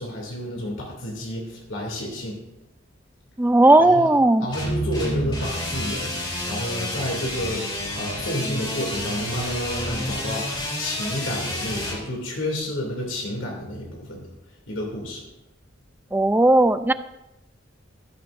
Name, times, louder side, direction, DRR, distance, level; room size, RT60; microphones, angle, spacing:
voice 1, 0.0-2.4 3.8-4.1 4.4-6.2 6.5-7.6 7.9-14.3 14.7-15.2, left 1 dB, 85° left, -1 dB, 2.7 m, -30 dB
voice 2, 3.4-4.5 16.1-16.9, right 2 dB, 10° right, 12 dB, 0.4 m, -16 dB
sound 1, 4.5-12.0, left 1 dB, 25° left, 3.7 m, -29 dB
15.0 x 11.5 x 2.6 m, 0.92 s
head